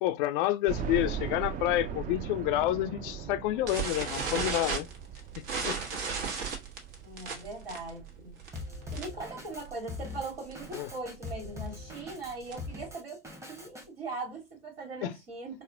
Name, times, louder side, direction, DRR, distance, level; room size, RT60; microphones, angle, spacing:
voice 1, 0.0-4.9 5.4-5.8 10.7-10.9 15.0-15.2, left 14 dB, 60° left, 0.4 m, -29 dB
sound 1, 0.7-9.6 10.1-10.2 10.5-10.6 11.8-11.9 12.2-12.3, right 8 dB, 30° right, 0.5 m, -40 dB
sound 2, 3.7-9.3 9.6-9.8 10.1-10.2 10.5-10.8 11.3-12.8, right 5 dB, 60° right, 1.1 m, -35 dB
voice 2, 7.0-8.4 8.9-13.2 13.5-15.6, right 3 dB, 80° right, 1.5 m, -40 dB
Drum kit, 8.5-13.8, left 3 dB, 10° right, 0.9 m, -42 dB
4.1 x 2.0 x 2.6 m
hypercardioid pair, 80°, 29 cm